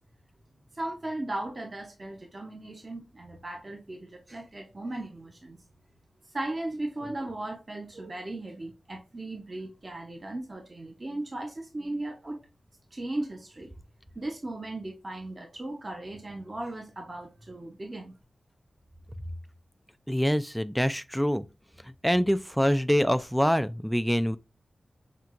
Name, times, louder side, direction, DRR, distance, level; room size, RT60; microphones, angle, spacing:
voice 1, 0.7-5.6 6.3-12.4 12.9-13.7 14.2-18.1, right 2 dB, 35° right, 0.8 m, -37 dB
voice 2, 20.1-21.4 21.8-24.4, equal, ahead, 0.3 m, -25 dB
5.8 x 2.8 x 2.5 m
wide cardioid pair, 100°, 0 cm